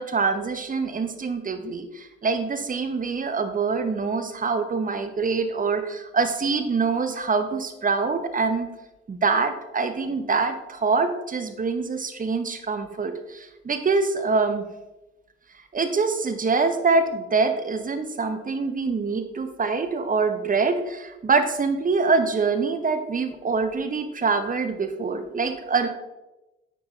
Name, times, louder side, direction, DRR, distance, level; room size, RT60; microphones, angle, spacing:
voice 1, 0.0-8.7 9.1-14.6 15.7-25.9, right 4 dB, 25° right, 8 dB, 1.0 m, -25 dB
9.6 x 6.1 x 3.0 m, 1.0 s
figure-of-eight pair, 45°, 31 cm